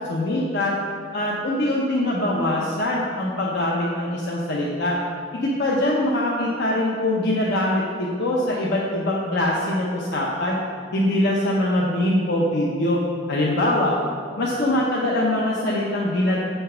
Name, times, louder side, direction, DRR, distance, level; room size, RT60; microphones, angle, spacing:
voice 1, 0.1-0.7 1.1-5.0 5.3-10.6 10.9-13.0 13.3-13.9 14.4-16.4, left 1 dB, 60° left, -4 dB, 0.8 m, -23 dB
7.7 x 4.5 x 5.6 m, 2.2 s
head